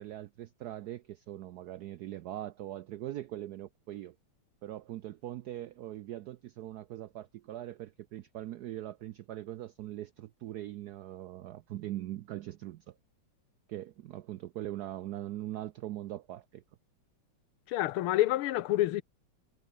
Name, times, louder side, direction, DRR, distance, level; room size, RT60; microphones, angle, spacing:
voice 1, 0.0-4.2 4.6-13.0 13.7-16.6, right 13 dB, 80° right, 0.8 m, -41 dB
voice 2, 17.7-19.0, left 15 dB, 85° left, 1.6 m, -28 dB
omnidirectional pair, 2.3 m